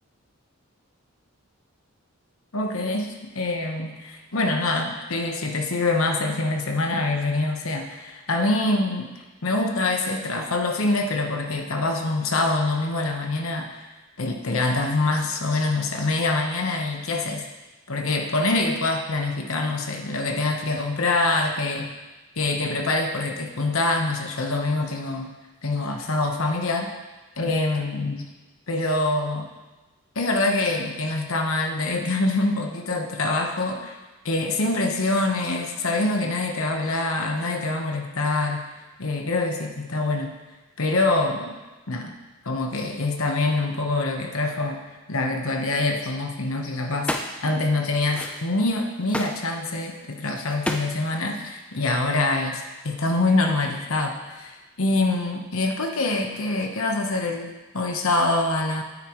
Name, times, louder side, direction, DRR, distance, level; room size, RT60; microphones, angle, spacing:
voice 1, 2.5-9.1 9.4-13.8 14.2-17.5 17.9-21.9 22.4-25.3 25.6-26.9 27.4-28.3 28.7-29.5 30.1-34.0 34.2-38.7 39.0-40.3 40.8-41.5 41.9-42.1 42.4-44.8 45.1-47.1 47.4-58.8, left 2 dB, 70° left, 3 dB, 1.1 m, -25 dB
sound 1, 46.9-47.4 48.1-48.6 49.0-50.1 50.4-51.7, left 1 dB, 5° left, 0.4 m, -31 dB
9.5 x 9.3 x 3.1 m, 1.1 s
head